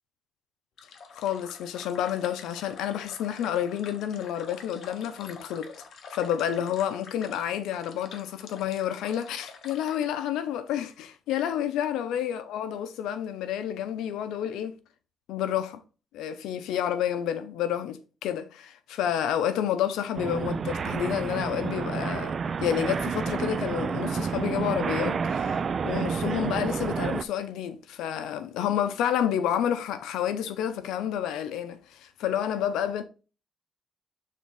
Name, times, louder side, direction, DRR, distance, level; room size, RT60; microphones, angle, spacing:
sound 1, 0.8-10.1, left 5 dB, 65° left, 1.1 m, -47 dB
voice 1, 1.1-5.7 6.1-14.7 15.3-15.8 16.1-22.4 22.6-25.6 25.8-33.0, left 10 dB, 90° left, 0.7 m, -29 dB
sound 2, 20.1-27.2, right 5 dB, 45° right, 0.4 m, -29 dB
6.4 x 3.7 x 4.0 m
cardioid pair, 90°, 0 cm